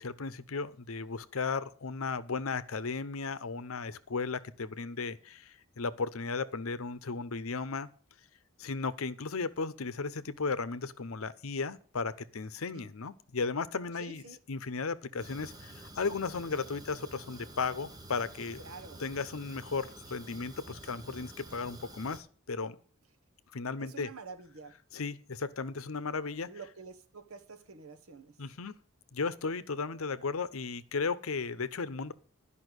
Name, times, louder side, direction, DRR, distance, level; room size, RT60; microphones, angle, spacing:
voice 1, 0.0-7.9 8.6-14.2 14.5-18.6 19.0-22.8 23.5-24.1 24.9-26.5 28.4-28.7 29.1-32.1, left 4 dB, 80° left, 0.8 m, -35 dB
voice 2, 14.0-14.4 18.6-19.0 23.8-24.7 26.5-28.4, right 4 dB, 90° right, 1.3 m, -48 dB
Fire, 15.2-22.2, right 2 dB, 20° right, 1.3 m, -49 dB
11.0 x 5.6 x 8.0 m
head